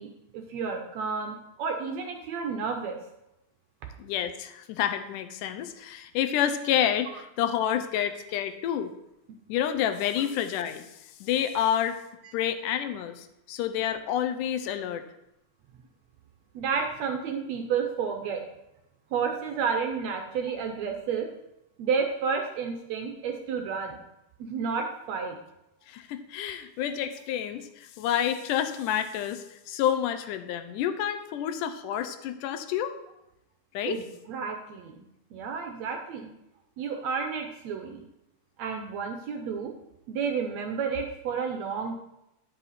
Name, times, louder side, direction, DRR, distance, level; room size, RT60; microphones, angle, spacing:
voice 1, 0.0-3.0 16.5-18.4 19.1-21.3 21.8-24.0 24.4-25.4 33.8-35.0 35.3-36.3 36.8-38.0 38.6-39.7 40.1-42.0, right 6 dB, 75° right, 4 dB, 1.7 m, -31 dB
voice 2, 4.0-8.9 9.5-12.0 12.3-15.0 25.9-33.0 33.7-34.0, left 10 dB, 85° left, 9 dB, 2.1 m, -29 dB
10.0 x 5.7 x 4.1 m, 0.87 s
omnidirectional pair, 3.7 m